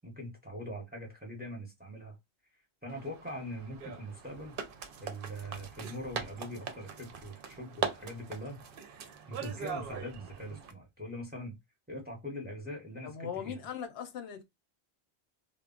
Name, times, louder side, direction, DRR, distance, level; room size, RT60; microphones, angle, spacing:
voice 1, 0.0-2.2 2.8-4.6 5.0-8.6 9.3-11.6 11.9-13.6, equal, 10° right, 0.7 m, -42 dB
sound 1, 2.9-10.7, right 6 dB, 65° right, 0.7 m, -41 dB
voice 2, 13.0-14.4, left 8 dB, 80° left, 0.8 m, -39 dB
2.2 x 2.0 x 3.6 m
omnidirectional pair, 1.1 m